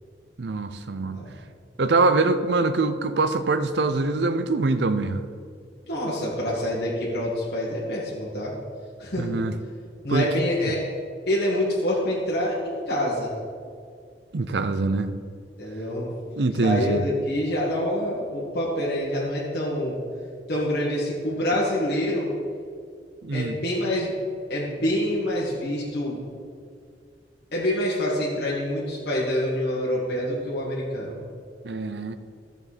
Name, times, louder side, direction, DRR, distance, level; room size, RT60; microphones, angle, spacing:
voice 1, 0.4-1.2 1.8-5.2 9.2-9.5 10.1-10.3 10.6-10.7 14.3-15.1 16.4-17.0 23.2-23.6 31.6-32.2, right 3 dB, 70° right, 11 dB, 0.6 m, -24 dB
voice 2, 5.9-8.5 9.0-9.4 10.0-10.8 11.3-13.3 15.6-16.1 16.6-20.0 20.5-22.3 23.3-24.1 24.5-26.2 27.5-31.2, left 1 dB, 65° left, -6 dB, 1.8 m, -26 dB
12.0 x 7.0 x 4.2 m, 2.2 s
head